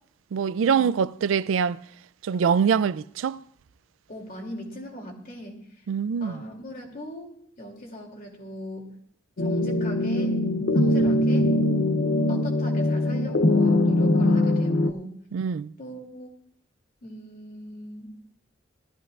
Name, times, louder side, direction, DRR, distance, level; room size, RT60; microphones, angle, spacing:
voice 1, 0.3-1.8 2.2-3.4 5.9-6.3 15.3-15.7, right 6 dB, 90° right, 0.3 m, -24 dB
voice 2, 4.1-5.7 6.2-7.3 7.6-8.9 9.4-10.4 10.7-11.5 12.3-15.2 15.8-16.3 17.0-18.1, equal, 50° left, 2.7 m, -39 dB
sound 1, 9.4-14.9, left 1 dB, 65° left, 0.7 m, -22 dB
18.5 x 13.5 x 2.4 m
head